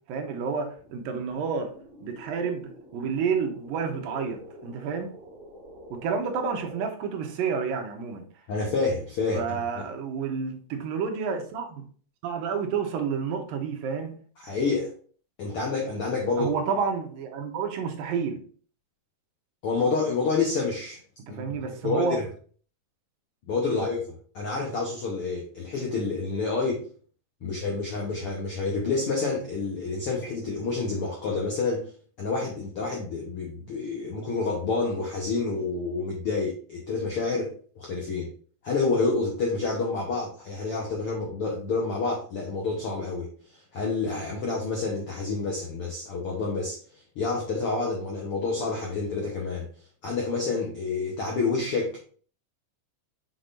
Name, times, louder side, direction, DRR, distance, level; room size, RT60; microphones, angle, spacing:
voice 1, 0.1-1.7 2.0-5.1 5.9-8.2 9.3-11.9 12.2-14.2 16.4-18.4 21.3-22.2 23.6-23.8 27.4-27.6 45.3-45.4, right 6 dB, 80° right, 2.6 m, -30 dB
sound 1, 0.8-6.8, equal, 35° right, 2.7 m, -47 dB
voice 2, 8.5-9.8 14.4-14.9 15.4-16.5 19.6-21.0 21.3-22.3 23.5-24.1 24.3-26.9 27.4-31.9 32.2-38.3 38.6-46.8 47.1-49.7 50.0-52.0, left 4 dB, 70° left, 1.3 m, -28 dB
6.0 x 6.0 x 2.6 m
omnidirectional pair, 4.1 m